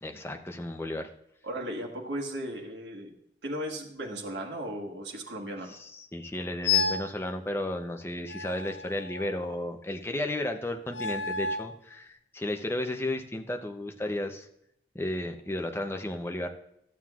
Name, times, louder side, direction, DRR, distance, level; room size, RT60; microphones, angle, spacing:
voice 1, 0.0-1.1 5.7-14.5 14.9-16.5, left 1 dB, 15° left, 5 dB, 0.6 m, -33 dB
voice 2, 1.4-3.1 3.4-5.7, right 1 dB, 75° right, 1 dB, 1.5 m, -36 dB
sound 1, 6.6-7.1 8.3-9.5 10.9-11.8, left 5 dB, 90° left, 0.5 m, -30 dB
13.0 x 7.4 x 2.4 m, 0.77 s
head